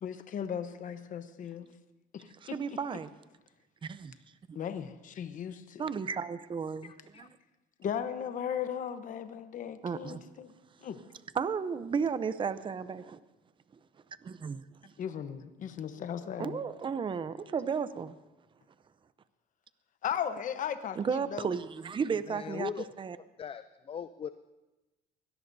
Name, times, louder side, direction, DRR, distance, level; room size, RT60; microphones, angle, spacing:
voice 1, 0.0-1.7 2.1-2.8 4.5-5.9 7.8-10.5 10.8-11.0 15.0-16.6 20.0-21.5, left 8 dB, 50° left, 9 dB, 1.0 m, -37 dB
voice 2, 2.4-3.1 3.8-4.1 4.5-4.6 5.8-6.9 7.2-7.3 9.8-10.2 11.3-13.2 14.2-14.6 16.4-18.2 21.0-22.7 23.0-23.2, right 6 dB, 30° right, 13 dB, 0.7 m, -33 dB
voice 3, 6.8-7.3 22.3-22.9 23.4-24.3, left 7 dB, 35° left, 12 dB, 0.5 m, -39 dB
23.5 x 17.5 x 2.7 m, 1.1 s
cardioid pair, 110°, 17 cm